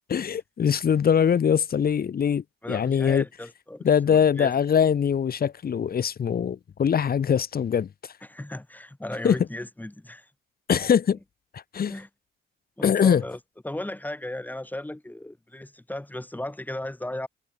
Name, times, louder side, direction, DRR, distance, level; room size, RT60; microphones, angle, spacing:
voice 1, 0.1-3.2 3.8-7.9 9.2-9.4 10.7-11.2 11.5-11.9 12.8-13.2, left 8 dB, 50° left, 2.1 m, -22 dB
voice 2, 2.6-4.5 8.2-10.3 11.9-12.1 12.8-13.4 13.6-17.3, left 1 dB, 10° left, 4.1 m, -36 dB
cardioid pair, 90°, 20 cm